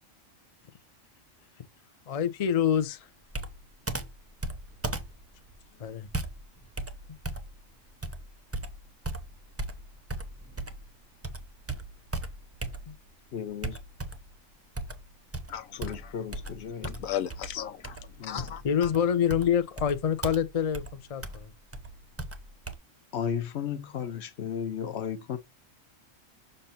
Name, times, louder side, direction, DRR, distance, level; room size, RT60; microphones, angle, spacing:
voice 1, 2.1-3.1 5.8-6.1 12.9-13.0 18.6-21.5, left 8 dB, 40° left, 0.5 m, -26 dB
Computer keyboard, 3.3-10.9 11.2-13.1 13.6-14.4 14.8-22.8, right 2 dB, 20° right, 0.5 m, -37 dB
voice 2, 13.3-13.8 15.8-17.0 18.2-18.5 23.1-25.4, left 8 dB, 60° left, 1.0 m, -34 dB
voice 3, 15.5-16.1 17.0-18.9, left 10 dB, 90° left, 1.2 m, -36 dB
6.6 x 2.7 x 5.6 m
omnidirectional pair, 1.3 m